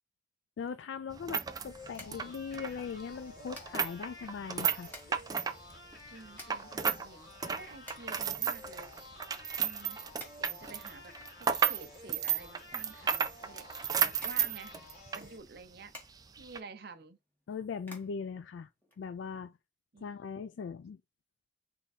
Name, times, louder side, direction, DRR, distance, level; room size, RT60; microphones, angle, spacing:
voice 1, 0.6-4.9 17.5-18.7 19.0-19.5 20.0-21.0, left 6 dB, 75° left, 0.3 m, -40 dB
sound 1, 0.7-19.5, left 1 dB, 10° left, 1.3 m, -56 dB
sound 2, 1.1-7.1 7.3-15.3 15.6-15.7 16.4-16.6, right 7 dB, 20° right, 0.3 m, -33 dB
sound 3, 1.7-15.4, left 2 dB, 55° left, 1.9 m, -52 dB
voice 2, 6.1-8.9 9.6-10.0 10.4-13.7 14.0-14.8 15.1-15.9 16.4-17.2 19.9-20.1, right 4 dB, 55° right, 0.7 m, -50 dB
3.7 x 3.4 x 4.1 m
head